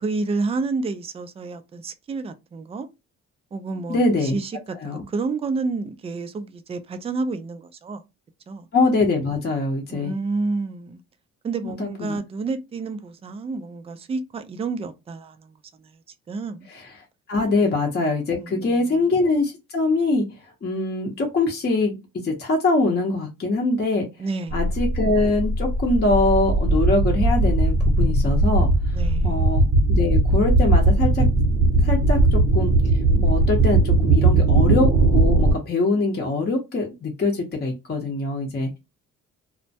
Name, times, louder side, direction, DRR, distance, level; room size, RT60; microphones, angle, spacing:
voice 1, 0.0-2.9 3.5-8.0 8.5-8.7 9.9-11.0 11.4-16.0 16.3-16.7 17.6-17.7 18.4-19.0 24.2-24.6 28.9-29.5 32.1-32.2, right 3 dB, 20° right, 0.3 m, -30 dB
voice 2, 3.9-4.4 4.8-5.0 8.7-10.2 11.6-12.2 16.7-16.8 17.3-20.3 20.6-24.1 24.5-28.7 29.2-31.3 31.8-32.7 33.1-38.8, left 3 dB, 35° left, 0.7 m, -23 dB
sound 1, 24.5-35.5, right 2 dB, 50° right, 0.7 m, -19 dB
2.1 x 2.1 x 2.7 m
cardioid pair, 90°, 30 cm